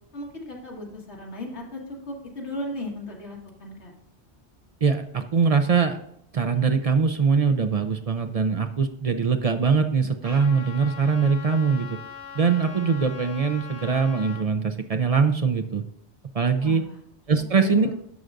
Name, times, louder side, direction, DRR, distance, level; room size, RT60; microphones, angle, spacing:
voice 1, 0.1-3.9 16.6-17.0 17.5-17.9, left 1 dB, 75° left, -2 dB, 1.9 m, -36 dB
voice 2, 4.8-6.0 6.3-12.0 12.3-15.8 16.3-16.8 17.3-17.9, right 5 dB, 45° right, 7 dB, 0.5 m, -22 dB
Trumpet, 10.2-14.4, left 6 dB, 20° left, 2.5 m, -41 dB
11.0 x 6.4 x 2.5 m, 0.74 s
omnidirectional pair, 1.2 m